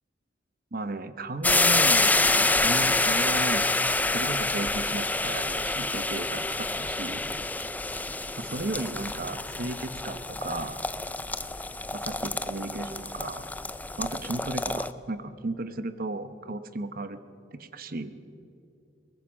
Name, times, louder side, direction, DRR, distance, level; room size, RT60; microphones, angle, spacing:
voice 1, 0.7-3.7 4.1-7.2 8.4-10.8 11.9-13.5 14.0-17.2 17.5-18.1, right 2 dB, 55° right, 11 dB, 1.0 m, -35 dB
sound 1, 1.4-14.9, left 2 dB, 10° left, 0.5 m, -27 dB
22.0 x 19.5 x 6.3 m, 2.7 s
head